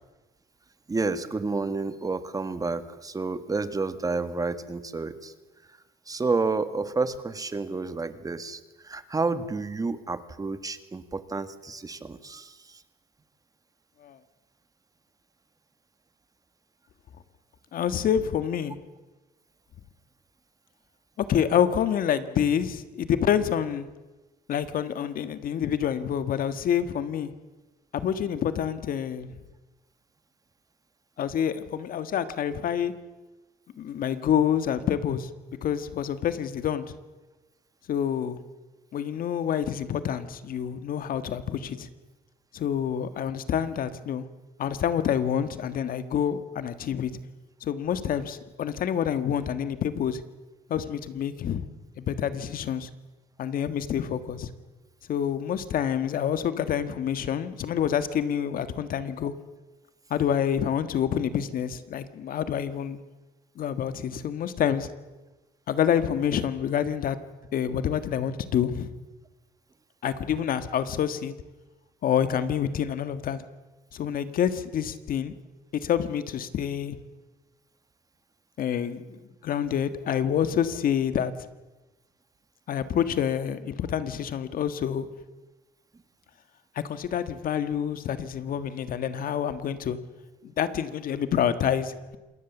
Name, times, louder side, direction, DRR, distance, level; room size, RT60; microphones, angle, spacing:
voice 1, 0.9-5.3 6.1-12.5, right 3 dB, 20° right, 11 dB, 1.6 m, -30 dB
voice 2, 17.7-18.8 21.2-23.9 24.5-27.3 27.9-29.3 31.2-32.9 33.8-35.3 35.6-36.8 37.9-38.4 38.9-41.9 42.5-44.3 44.6-47.1 47.6-50.2 50.7-51.6 52.0-52.9 53.4-54.5 55.1-59.3 60.1-63.0 63.6-64.9 65.7-67.2 67.5-68.9 70.0-71.3 72.0-73.4 73.9-75.3 75.8-77.0 78.6-81.3 82.7-85.1 86.7-90.0 90.4-92.2, left 9 dB, 55° left, 12 dB, 1.6 m, -27 dB
27.0 x 20.0 x 7.2 m, 1.1 s
cardioid pair, 110°, 17 cm